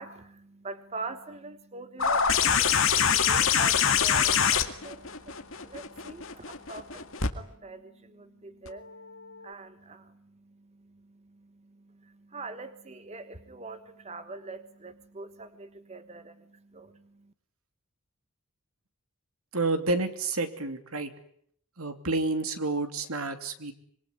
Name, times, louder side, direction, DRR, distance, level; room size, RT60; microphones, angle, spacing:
voice 1, 0.0-17.3, right 3 dB, 30° right, 10 dB, 1.3 m, -44 dB
sound 1, 2.0-7.3 8.7-8.8, left 7 dB, 60° left, 2.1 m, -24 dB
voice 2, 19.5-21.1 21.8-23.7, right 3 dB, 75° right, 8 dB, 3.0 m, -29 dB
26.0 x 23.0 x 9.9 m, 0.64 s
head